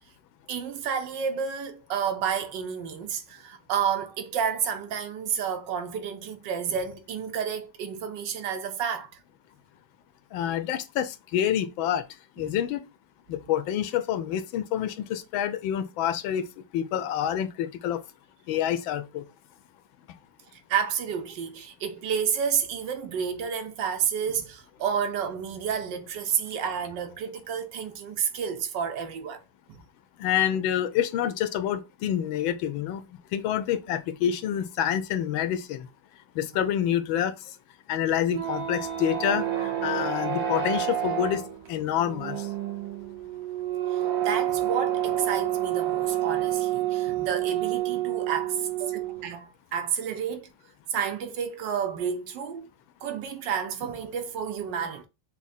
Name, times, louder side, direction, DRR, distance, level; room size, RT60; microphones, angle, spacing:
voice 1, 0.5-9.1 12.4-12.6 20.5-29.4 29.7-29.8 43.9-50.5 50.9-52.7 53.0-55.1, right 7 dB, 70° right, 1.3 m, -30 dB
voice 2, 10.3-12.0 12.4-12.8 13.3-18.0 18.5-19.2 30.2-33.1 33.3-35.9 36.3-37.6 37.9-41.4 41.7-42.5, left 10 dB, 80° left, 1.4 m, -27 dB
sound 1, 38.1-49.3, right 11 dB, 55° right, 1.1 m, -29 dB
6.0 x 2.1 x 4.1 m
omnidirectional pair, 2.1 m